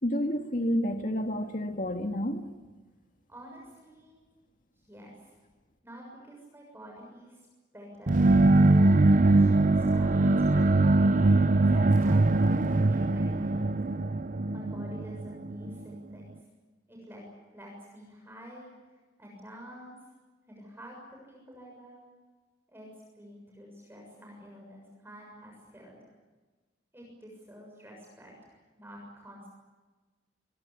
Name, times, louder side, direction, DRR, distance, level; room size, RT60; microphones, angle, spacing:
voice 1, 0.0-2.5, equal, 50° left, 5 dB, 2.0 m, -29 dB
voice 2, 3.3-4.3 4.8-5.3 5.8-7.4 7.7-10.7 11.6-13.9 14.5-16.4 16.9-17.2 17.5-18.7 19.2-20.0 20.5-22.0 22.7-26.0 26.9-29.5, equal, 15° right, -1 dB, 6.9 m, -49 dB
sound 1, 8.1-15.8, right 2 dB, 45° right, 0.8 m, -22 dB
26.0 x 23.0 x 8.6 m, 1.3 s
head